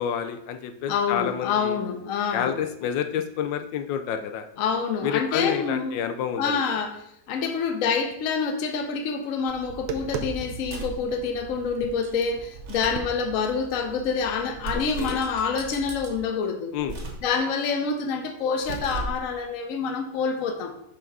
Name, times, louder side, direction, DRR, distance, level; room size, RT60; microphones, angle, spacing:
voice 1, 0.0-1.8 2.3-4.4 5.0-6.6 14.7-15.2 16.7-17.0, left 8 dB, 85° left, 7 dB, 1.3 m, -29 dB
voice 2, 0.9-2.6 4.6-6.0 6.4-7.0 7.3-16.7 17.2-20.8, left 5 dB, 60° left, 6 dB, 1.0 m, -27 dB
Tap, 9.5-16.2, right 5 dB, 65° right, 0.8 m, -39 dB
sound 1, 10.6-11.1 12.5-13.1 14.6-15.2 16.8-17.3 18.5-19.3, right 3 dB, 45° right, 1.2 m, -35 dB
5.8 x 3.6 x 5.4 m, 0.74 s
omnidirectional pair, 2.0 m